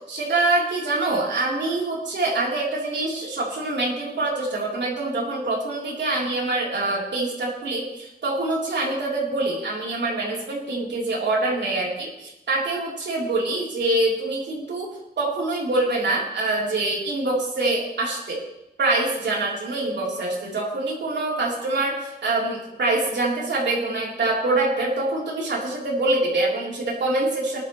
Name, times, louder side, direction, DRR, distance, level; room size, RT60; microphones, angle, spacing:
voice 1, 0.1-14.9 15.2-18.4 18.8-27.6, right 2 dB, 85° right, -3 dB, 3.6 m, -25 dB
19.5 x 11.5 x 3.2 m, 0.93 s
wide cardioid pair, 120°, 18 cm